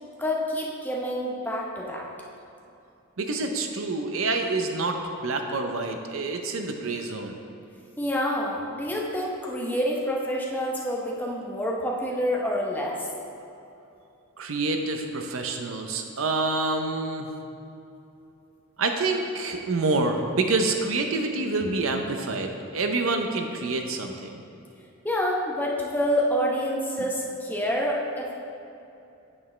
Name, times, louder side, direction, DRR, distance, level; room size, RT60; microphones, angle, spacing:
voice 1, 0.2-2.1 8.0-13.1 25.0-28.3, equal, 10° left, -3 dB, 0.8 m, -27 dB
voice 2, 3.2-7.4 14.4-17.3 18.8-24.4, right 3 dB, 70° right, 5 dB, 0.6 m, -27 dB
8.6 x 7.2 x 3.2 m, 2.7 s
head